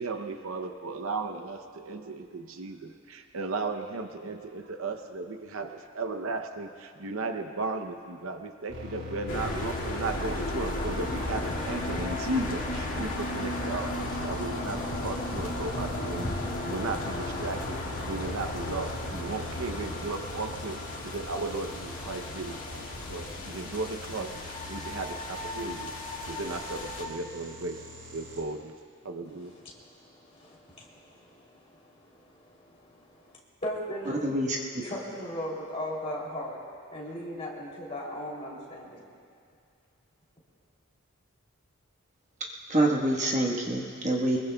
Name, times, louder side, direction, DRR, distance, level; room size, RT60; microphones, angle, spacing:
voice 1, 0.0-25.9 26.2-27.9 28.1-28.7 29.0-29.5, right 3 dB, 65° right, 7 dB, 0.7 m, -35 dB
sound 1, 8.7-28.4, left 3 dB, 85° right, 4.6 m, -43 dB
sound 2, 9.3-27.0, left 1 dB, 65° left, 2.2 m, -35 dB
voice 2, 29.2-34.2 34.8-36.6 36.9-39.0, equal, 30° left, -4 dB, 3.1 m, -38 dB
voice 3, 34.2-34.6 42.7-44.4, right 1 dB, 30° right, -1 dB, 1.3 m, -26 dB
23.5 x 21.5 x 2.3 m, 2.3 s
head